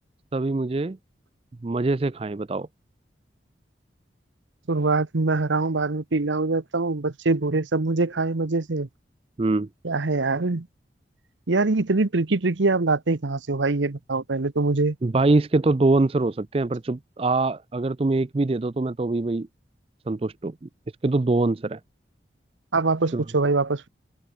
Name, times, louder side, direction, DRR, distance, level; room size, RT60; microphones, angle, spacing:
voice 1, 0.3-1.0 1.6-2.7 9.4-9.7 15.0-19.5 20.1-20.5 21.0-21.8 23.1-23.2, right 2 dB, 30° right, 0.4 m, -23 dB
voice 2, 4.7-8.9 9.8-10.7 11.5-15.0 22.7-23.9, right 3 dB, 85° right, 1.0 m, -23 dB
head